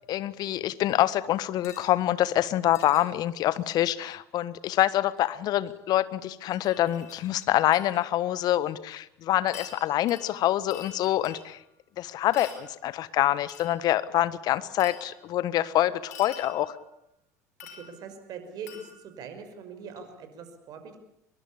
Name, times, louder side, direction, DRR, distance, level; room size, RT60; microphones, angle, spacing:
voice 1, 0.1-11.6 12.0-16.8, left 13 dB, 50° left, 17 dB, 1.4 m, -26 dB
sound 1, 1.6-1.9 2.7-3.0 5.2-5.3 5.7-5.8 6.5-8.1 8.5-8.6 9.5-11.7 12.3-12.7 13.5-13.9 14.8-15.3 16.1-16.9 17.6-18.2 18.7-19.2 20.0-20.1, left 6 dB, 80° left, 5.4 m, -47 dB
voice 2, 17.7-21.0, right 5 dB, 50° right, 8 dB, 5.7 m, -42 dB
24.0 x 22.5 x 8.7 m, 0.80 s
figure-of-eight pair, 65°, 9 cm